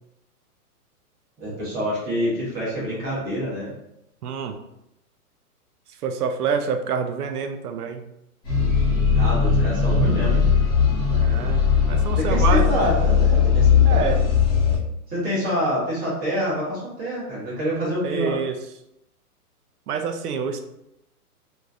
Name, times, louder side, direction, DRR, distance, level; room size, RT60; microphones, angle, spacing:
voice 1, 1.4-3.7 9.1-10.4 12.1-14.1 15.1-18.4, equal, 20° right, -7 dB, 1.2 m, -26 dB
voice 2, 4.2-4.5 6.0-8.0 11.1-12.9 13.8-14.2 18.0-18.5 19.9-20.6, right 6 dB, 75° right, 6 dB, 0.6 m, -27 dB
sound 1, 8.4-14.8, left 6 dB, 10° left, 0.7 m, -19 dB
3.0 x 2.6 x 2.4 m, 0.83 s
hypercardioid pair, 145°, 46 cm